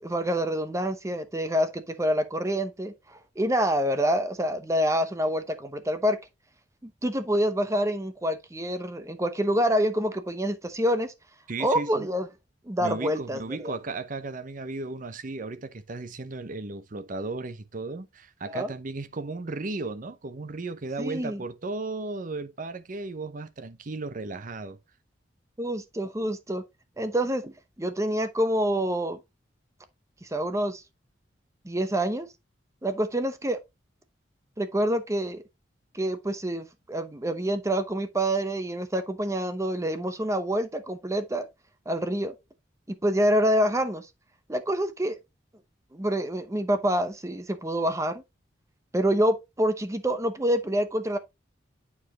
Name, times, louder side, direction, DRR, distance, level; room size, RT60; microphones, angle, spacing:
voice 1, 0.0-6.2 6.8-11.1 11.6-12.3 12.7-13.7 18.5-18.7 21.0-21.4 25.6-26.6 27.0-27.5 27.8-29.2 30.2-30.8 31.6-32.3 32.8-33.6 34.6-35.4 35.9-41.5 41.9-42.3 42.9-44.1 44.5-45.2 45.9-48.2 48.9-51.2, equal, 15° right, 0.7 m, -27 dB
voice 2, 11.5-12.1 12.8-24.8, right 3 dB, 45° right, 0.7 m, -35 dB
8.8 x 4.8 x 2.8 m
head